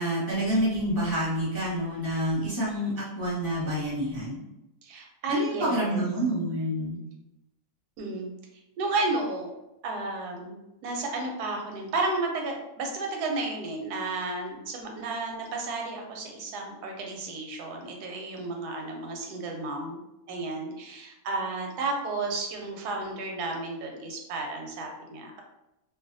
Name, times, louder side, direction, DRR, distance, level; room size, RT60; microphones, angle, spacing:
voice 1, 0.0-2.9 3.2-4.4 5.3-7.0, equal, 20° left, -9 dB, 0.6 m, -28 dB
voice 2, 4.8-6.0 8.0-8.3 8.8-9.5 9.8-20.0 20.3-25.4, right 3 dB, 85° right, 2 dB, 1.1 m, -32 dB
2.6 x 2.2 x 2.5 m, 0.91 s
omnidirectional pair, 1.6 m